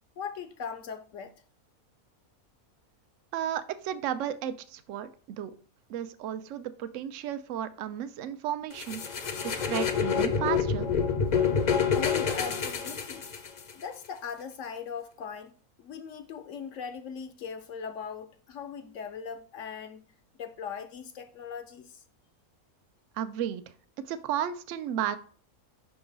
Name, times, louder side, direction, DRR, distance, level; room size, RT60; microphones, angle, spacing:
voice 1, 0.2-1.3 9.2-9.3 11.9-13.3 13.7-15.5 15.8-20.0 20.4-22.0, left 6 dB, 65° left, 0.9 m, -39 dB
voice 2, 3.3-5.1 5.4-5.5 5.9-9.0 9.4-10.9 23.2-23.6 24.0-25.2, right 10 dB, 65° right, 0.9 m, -33 dB
sound 1, 8.8-13.7, left 6 dB, 45° left, 0.6 m, -27 dB
5.8 x 3.8 x 5.2 m
omnidirectional pair, 1.5 m